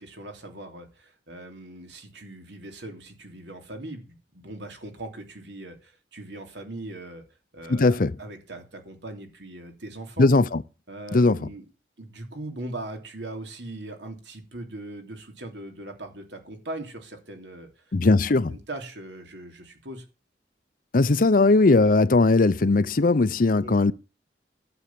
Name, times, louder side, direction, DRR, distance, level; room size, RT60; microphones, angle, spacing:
voice 1, 0.0-7.2 7.5-10.3 10.9-11.6 12.0-17.8 18.5-20.0 23.5-23.9, right 2 dB, 75° right, 3.0 m, -40 dB
voice 2, 7.7-8.1 10.2-10.6 11.1-11.4 17.9-18.5 20.9-23.9, left 3 dB, 50° left, 0.6 m, -19 dB
11.5 x 8.1 x 7.5 m
head